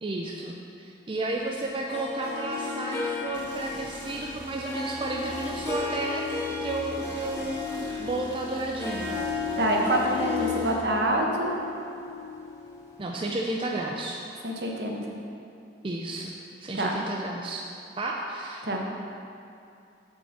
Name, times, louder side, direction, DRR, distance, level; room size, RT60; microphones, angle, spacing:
voice 1, 0.0-6.2 6.6-9.2 13.0-14.2 15.8-16.3 16.6-17.6 18.0-18.6, right 2 dB, 30° right, -1 dB, 0.4 m, -32 dB
Harp, 1.9-13.0, left 4 dB, 15° left, 0.9 m, -34 dB
sound 1, 3.3-10.7, right 1 dB, 85° right, 1.4 m, -45 dB
voice 2, 9.6-11.5 14.4-15.0 16.7-16.9 18.6-18.8, right 1 dB, 65° right, 0 dB, 1.1 m, -26 dB
7.0 x 5.3 x 6.7 m, 2.5 s
head